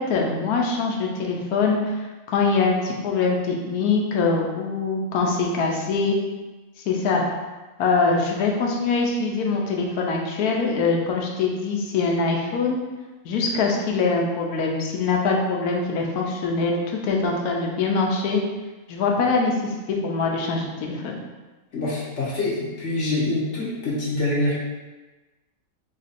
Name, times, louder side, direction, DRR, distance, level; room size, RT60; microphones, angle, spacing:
voice 1, 0.0-2.0 2.3-6.2 6.9-7.2 7.8-12.8 13.2-18.4 18.9-21.1, left 4 dB, 80° left, 0 dB, 1.2 m, -23 dB
voice 2, 21.7-24.6, left 2 dB, 55° left, -6 dB, 1.1 m, -25 dB
3.8 x 2.5 x 4.1 m, 1.2 s
omnidirectional pair, 1.6 m